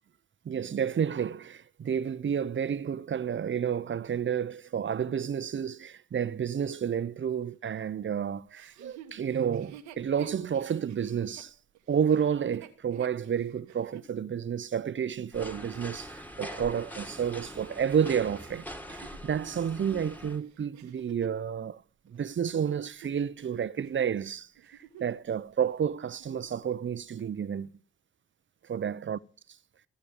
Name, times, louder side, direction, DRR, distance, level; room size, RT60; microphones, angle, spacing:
voice 1, 0.5-11.5 11.9-21.8 22.1-24.5 25.0-27.7 28.7-29.2, right 8 dB, 40° right, 0.7 m, -30 dB
Chuckle chortle, 8.5-14.1 14.7-14.8 17.5-21.4 22.1-23.5 23.8-24.1 24.6-25.3 25.6-25.7 26.1-26.6 27.2-27.3, right 9 dB, 90° right, 1.2 m, -50 dB
sound 1, 15.3-20.4, equal, 5° left, 2.2 m, -43 dB
15.5 x 6.7 x 8.7 m
hypercardioid pair, 45°, 29 cm